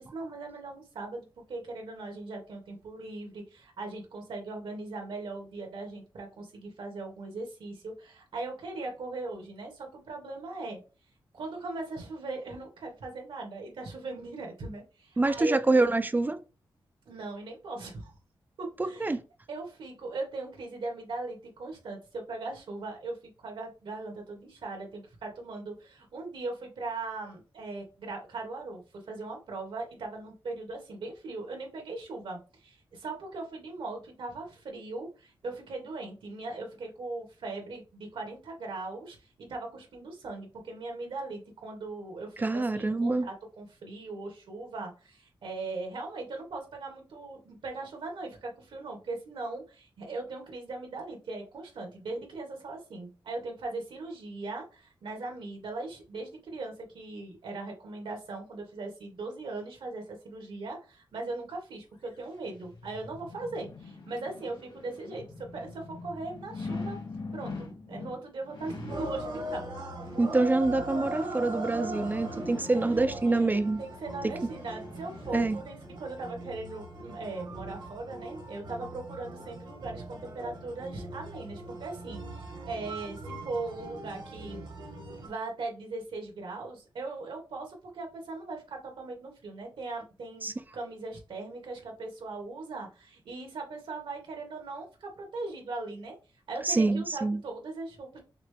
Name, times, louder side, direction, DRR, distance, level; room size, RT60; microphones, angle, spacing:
voice 1, 0.0-10.8 11.3-15.8 17.1-18.1 18.6-19.2 19.5-28.8 29.1-67.0 67.3-69.8 72.7-84.6 85.2-96.2 96.5-98.2, right 3 dB, 85° right, 1.9 m, -39 dB
voice 2, 15.2-16.4 18.8-19.2 42.4-43.3 70.2-73.8 75.3-75.6 90.4-90.5 96.6-97.4, right 2 dB, 20° right, 0.4 m, -26 dB
sound 1, 62.1-76.0 76.4-76.5, left 3 dB, 75° left, 2.0 m, -44 dB
sound 2, 68.9-85.3, right 2 dB, 65° right, 1.3 m, -40 dB
5.8 x 2.3 x 3.3 m
wide cardioid pair, 140°, 9 cm